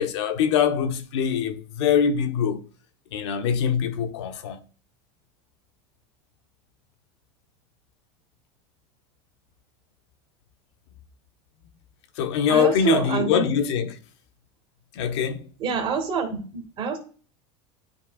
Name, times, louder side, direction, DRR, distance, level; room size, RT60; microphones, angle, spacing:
voice 1, 0.0-2.6 3.1-4.6 12.2-14.0 14.9-15.5, left 8 dB, 80° left, 1.1 m, -23 dB
voice 2, 12.5-13.4 15.6-17.0, right 6 dB, 35° right, 2.1 m, -26 dB
11.5 x 5.0 x 2.4 m
supercardioid pair, 135°, 14 cm